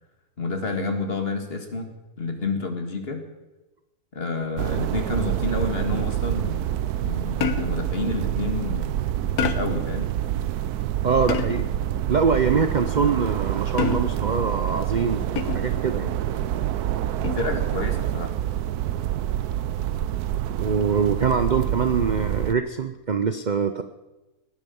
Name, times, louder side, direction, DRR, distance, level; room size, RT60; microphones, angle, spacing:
voice 1, 0.4-3.2 4.1-6.7 7.0-8.9 9.4-10.1 17.2-18.3, left 3 dB, 40° left, 5 dB, 2.2 m, -29 dB
sound 1, 4.6-22.5, right 12 dB, 90° right, 1.2 m, -27 dB
sound 2, 7.4-7.9 9.4-9.9 11.3-11.8 13.8-14.3 15.4-15.8 17.2-17.6, left 7 dB, 85° left, 1.5 m, -28 dB
voice 2, 11.0-11.7 12.1-16.1 20.6-23.8, right 5 dB, 45° right, 9 dB, 0.6 m, -24 dB
17.0 x 11.5 x 7.1 m, 1.0 s
omnidirectional pair, 1.6 m